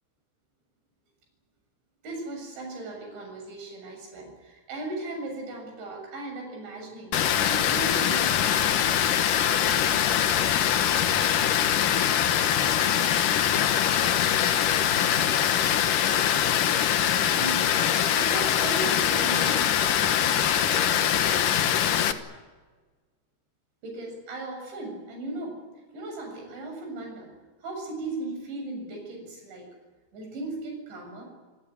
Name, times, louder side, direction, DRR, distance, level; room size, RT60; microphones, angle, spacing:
voice 1, 2.0-7.1 7.4-8.5 17.3-17.8 18.1-21.6 23.8-25.6 25.9-27.3 27.6-29.7 30.1-31.2, right 2 dB, 60° right, 3 dB, 9.4 m, -37 dB
Water, 7.1-22.1, left 10 dB, 90° left, 1.8 m, -23 dB
28.5 x 17.5 x 9.8 m, 1.4 s
omnidirectional pair, 5.9 m